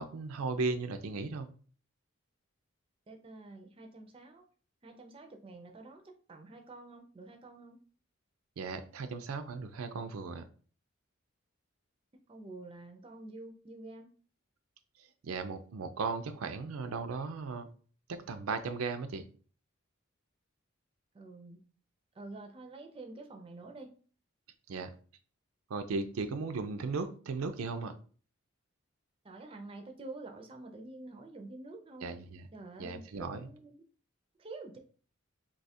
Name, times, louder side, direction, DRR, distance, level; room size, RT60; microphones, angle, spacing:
voice 1, 0.0-1.5 8.6-10.4 15.2-17.7 18.1-19.2 24.7-24.9 25.7-27.9 32.0-32.5 32.8-33.5, right 4 dB, 85° right, 0.4 m, -36 dB
voice 2, 3.1-4.4 4.8-7.8 12.3-14.1 21.1-21.6 22.1-23.9 29.2-32.2 32.5-33.8 34.4-34.8, right 2 dB, 25° right, 0.4 m, -48 dB
2.8 x 2.3 x 4.1 m
head